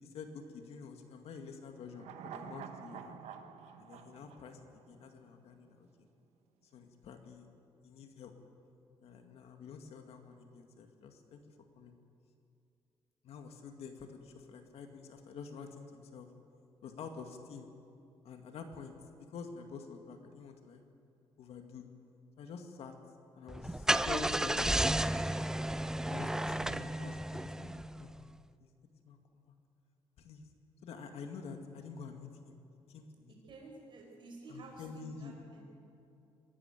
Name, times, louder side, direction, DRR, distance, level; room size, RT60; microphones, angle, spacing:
voice 1, 0.0-3.2 3.8-4.6 4.9-6.1 6.7-7.5 7.8-8.3 9.0-11.4 11.8-12.0 13.2-16.3 16.8-17.7 18.2-20.8 21.4-21.9 22.4-22.9 23.4-25.3 26.1-28.2 28.6-28.7 29.1-29.6 30.2-30.5 30.8-32.6 32.9-33.3 34.5-35.3, left 5 dB, 70° left, 5 dB, 2.1 m, -48 dB
sound 1, 1.9-5.3 5.6-5.7, right 8 dB, 85° right, 1.3 m, -48 dB
Car / Engine starting, 23.5-28.2, right 1 dB, 5° right, 0.4 m, -33 dB
voice 2, 33.3-35.6, right 2 dB, 50° right, 0 dB, 5.0 m, -51 dB
22.5 x 12.5 x 9.2 m, 2.6 s
cardioid pair, 120°, 11 cm